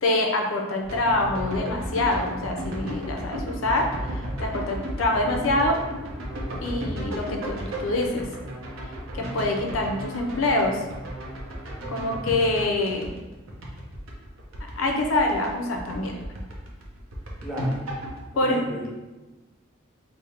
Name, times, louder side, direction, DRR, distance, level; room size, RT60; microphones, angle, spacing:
voice 1, 0.0-5.8 6.6-8.3 9.1-10.8 11.9-13.1 14.8-16.1 18.4-18.6, left 2 dB, 80° left, 2 dB, 0.6 m, -25 dB
sound 1, 0.8-15.5 15.7-18.2, equal, 90° right, 0.7 m, -34 dB
voice 2, 17.4-17.9 18.3-18.9, left 1 dB, 5° right, -5 dB, 0.7 m, -34 dB
3.4 x 2.0 x 4.2 m, 1.1 s
head